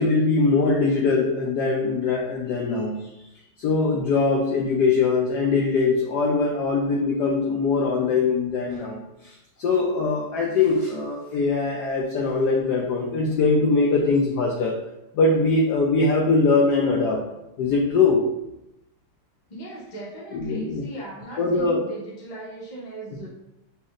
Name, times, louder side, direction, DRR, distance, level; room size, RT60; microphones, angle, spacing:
voice 1, 0.0-3.0 3.6-14.7 15.1-17.2 17.6-18.2 20.3-20.8 21.4-21.8, left 4 dB, 70° left, -2 dB, 1.0 m, -22 dB
voice 2, 19.5-23.3, right 2 dB, 25° left, -6 dB, 1.2 m, -38 dB
6.9 x 3.1 x 2.4 m, 0.89 s
omnidirectional pair, 2.3 m